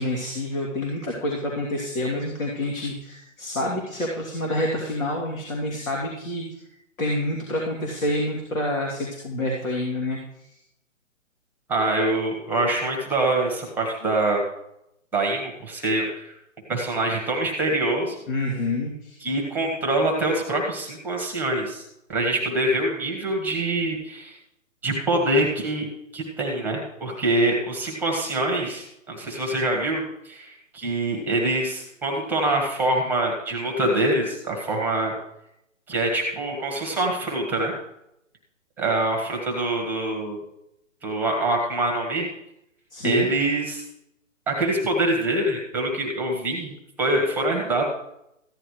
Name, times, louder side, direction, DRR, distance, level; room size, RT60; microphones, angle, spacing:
voice 1, 0.0-6.4 7.0-10.2 18.3-19.3 42.9-43.3, left 1 dB, 85° left, -2 dB, 2.9 m, -28 dB
voice 2, 11.7-14.4 15.1-16.3 16.7-18.2 19.2-21.8 22.1-24.4 24.8-25.8 26.1-35.1 35.9-37.7 38.8-40.4 41.0-42.3 43.0-43.8 44.5-47.9, right 2 dB, 5° right, 1 dB, 1.2 m, -25 dB
15.0 x 10.0 x 3.2 m, 0.80 s
hypercardioid pair, 155°, 39 cm